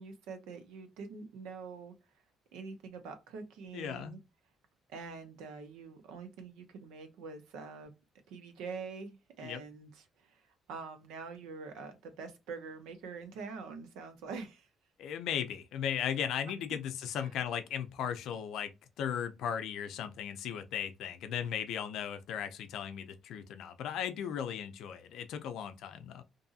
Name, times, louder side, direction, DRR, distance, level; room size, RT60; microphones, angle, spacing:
voice 1, 0.0-1.9 2.5-4.2 4.9-7.9 8.3-14.7 17.1-17.3, right 5 dB, 90° right, 0.6 m, -45 dB
voice 2, 3.7-4.2 9.4-9.6 15.0-18.7 19.0-26.2, left 8 dB, 75° left, 0.4 m, -36 dB
2.7 x 2.6 x 2.4 m
cardioid pair, 80°, 0 cm